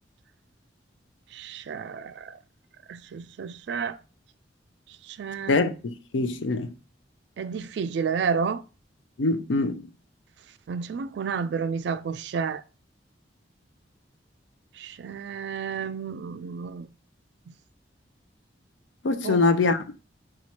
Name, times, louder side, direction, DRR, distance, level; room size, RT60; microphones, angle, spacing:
voice 1, 1.3-2.4 2.9-4.0 5.1-5.6 7.4-8.6 10.7-12.6 14.8-16.9 17.5-17.6 19.2-19.4, right 6 dB, 65° right, 0.3 m, -31 dB
voice 2, 5.5-6.7 9.2-9.8 19.0-19.9, left 3 dB, 85° left, 0.5 m, -24 dB
4.2 x 2.3 x 4.3 m
head